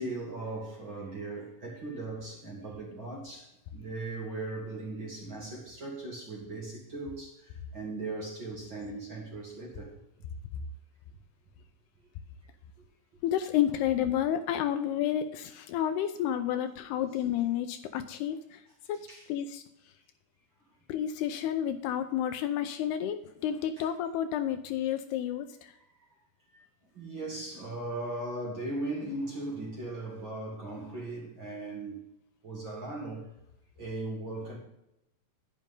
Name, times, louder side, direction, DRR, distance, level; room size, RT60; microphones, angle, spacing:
voice 1, 0.0-9.9 19.1-19.2 23.8-23.9 26.5-26.6 26.9-32.0 32.4-33.3 33.8-34.6, right 2 dB, 35° right, -3 dB, 2.7 m, -38 dB
voice 2, 13.2-18.6 18.9-19.6 20.9-25.7, left 10 dB, 80° left, 9 dB, 2.6 m, -30 dB
11.0 x 10.5 x 3.7 m, 0.83 s
omnidirectional pair, 4.9 m